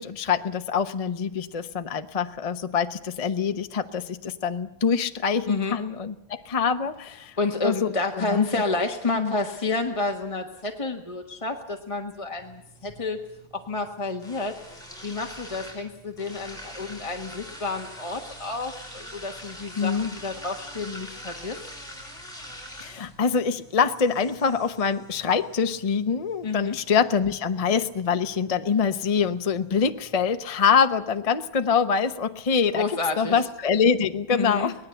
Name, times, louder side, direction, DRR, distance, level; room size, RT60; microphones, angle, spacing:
voice 1, 0.0-7.3 7.6-7.9 8.2-8.6 9.1-9.3 19.8-20.1 22.8-32.8 33.2-34.7, left 6 dB, 40° left, 8 dB, 0.5 m, -25 dB
voice 2, 5.5-5.8 7.4-13.2 13.5-14.6 15.0-21.6 26.4-26.8 32.7-33.5 34.3-34.7, left 3 dB, 20° left, 2 dB, 1.1 m, -30 dB
sound 1, 12.4-30.4, equal, ahead, 5.9 m, -45 dB
23.5 x 18.5 x 8.0 m, 0.84 s
omnidirectional pair, 2.2 m